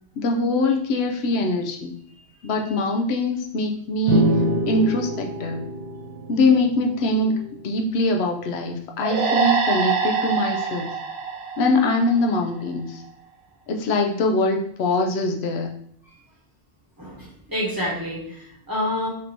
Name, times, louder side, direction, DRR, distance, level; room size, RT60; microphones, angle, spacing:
voice 1, 0.2-2.0 2.4-4.4 4.7-5.7 6.3-10.8 11.6-13.0 13.7-15.7, left 2 dB, 75° left, 2 dB, 0.8 m, -23 dB
sound 1, 4.1-7.6, equal, 75° right, 0.8 m, -25 dB
sound 2, 9.0-12.5, right 5 dB, 45° right, 0.8 m, -24 dB
voice 2, 17.0-19.1, left 1 dB, 20° right, -5 dB, 1.0 m, -28 dB
5.1 x 2.6 x 2.8 m, 0.65 s
omnidirectional pair, 1.1 m